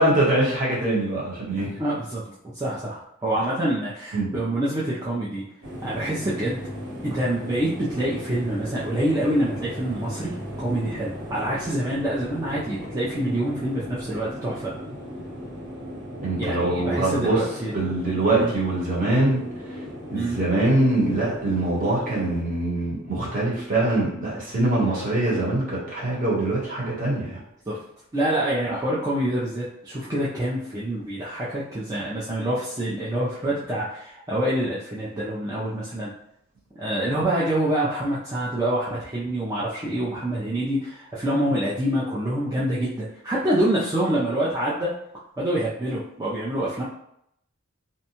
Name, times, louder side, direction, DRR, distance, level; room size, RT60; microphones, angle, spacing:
voice 1, 0.0-1.7 4.1-4.3 16.2-17.4 17.7-19.4 19.7-19.8 20.1-27.4, right 2 dB, 40° right, -6 dB, 1.0 m, -23 dB
voice 2, 1.8-2.2 2.5-5.4 5.8-6.7 7.0-14.7 16.4-17.9 18.3-18.5 20.1-20.4 24.8-25.0 27.7-27.8 28.1-36.1 36.8-44.9 45.4-46.8, right 1 dB, 15° right, -8 dB, 0.4 m, -26 dB
sound 1, 5.6-22.4, equal, 65° right, 1.2 m, -37 dB
2.6 x 2.2 x 2.8 m, 0.74 s
head